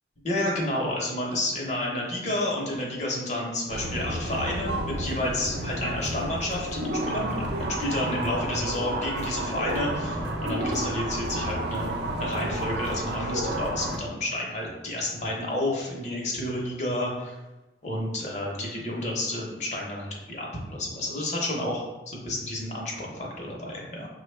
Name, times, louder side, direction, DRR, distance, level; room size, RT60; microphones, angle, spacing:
voice 1, 0.2-11.9 12.2-17.4 17.8-24.1, left 1 dB, 40° left, -2 dB, 0.9 m, -30 dB
sound 1, 3.7-14.0, right 1 dB, 70° right, 0.7 m, -31 dB
5.7 x 2.3 x 3.3 m, 1.1 s
head